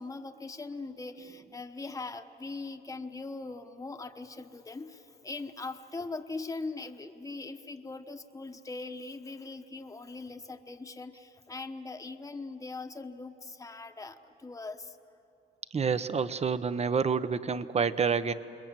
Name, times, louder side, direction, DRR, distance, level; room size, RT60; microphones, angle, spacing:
voice 1, 0.0-15.0, left 3 dB, 15° left, 6 dB, 1.1 m, -41 dB
voice 2, 15.7-18.3, right 6 dB, 30° right, 13 dB, 0.9 m, -28 dB
29.0 x 21.0 x 7.6 m, 2.9 s
cardioid pair, 90°, 20 cm